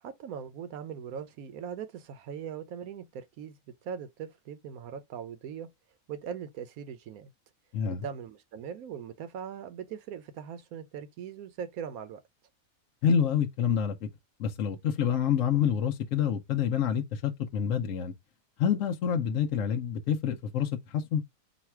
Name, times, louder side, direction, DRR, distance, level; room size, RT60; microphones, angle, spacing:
voice 1, 0.0-3.6 3.8-5.7 6.1-7.3 7.9-12.2, right 7 dB, 80° right, 1.2 m, -40 dB
voice 2, 7.7-8.1 13.0-14.1 14.4-18.1 18.6-21.2, left 8 dB, 70° left, 1.0 m, -27 dB
4.0 x 2.4 x 4.4 m
omnidirectional pair, 1.5 m